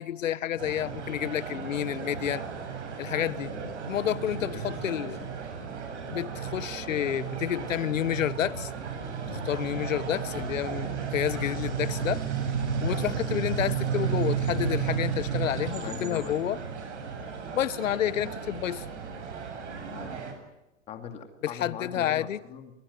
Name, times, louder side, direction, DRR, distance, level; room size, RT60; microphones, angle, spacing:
voice 1, 0.0-2.4 3.0-5.2 6.1-8.7 9.3-12.2 12.8-16.6 17.5-18.8 21.4-22.4, left 11 dB, 85° left, 1.4 m, -30 dB
sound 1, 0.6-20.3, right 6 dB, 65° right, 8.0 m, -33 dB
voice 2, 4.0-5.3 9.2-9.4 12.8-13.0 15.7-16.5 19.9-20.2 20.9-22.7, left 7 dB, 15° left, 2.4 m, -41 dB
24.0 x 22.5 x 9.7 m
hypercardioid pair, 170°, 38 cm